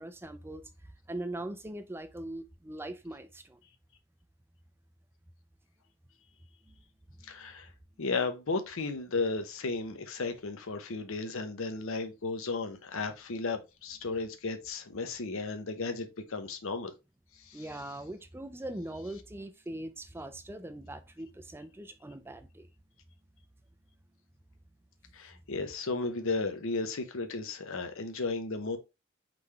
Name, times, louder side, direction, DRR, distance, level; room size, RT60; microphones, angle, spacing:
voice 1, 0.0-3.6 6.7-6.8 7.2-7.3 17.5-22.7, right 1 dB, 10° right, 0.4 m, -41 dB
voice 2, 7.2-7.7 8.0-16.9 17.4-17.6 25.1-28.8, left 3 dB, 65° left, 0.8 m, -34 dB
3.8 x 3.3 x 3.3 m
head